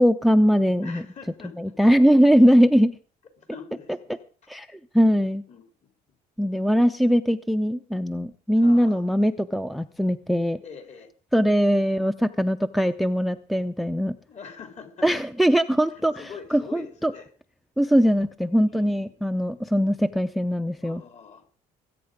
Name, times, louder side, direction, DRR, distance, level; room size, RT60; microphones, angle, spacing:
voice 1, 0.0-1.0 1.6-3.0 4.5-4.7 4.9-5.4 6.4-10.6 11.3-14.2 15.0-17.1 17.8-21.0, equal, ahead, 13 dB, 0.6 m, -21 dB
voice 2, 0.8-1.7 3.4-4.2 5.5-5.6 8.6-9.0 10.6-11.1 14.3-15.1 15.8-17.3 18.7-19.5 20.8-21.4, left 6 dB, 45° left, 6 dB, 3.8 m, -44 dB
21.0 x 8.9 x 5.1 m, 0.42 s
cardioid pair, 110°, 17 cm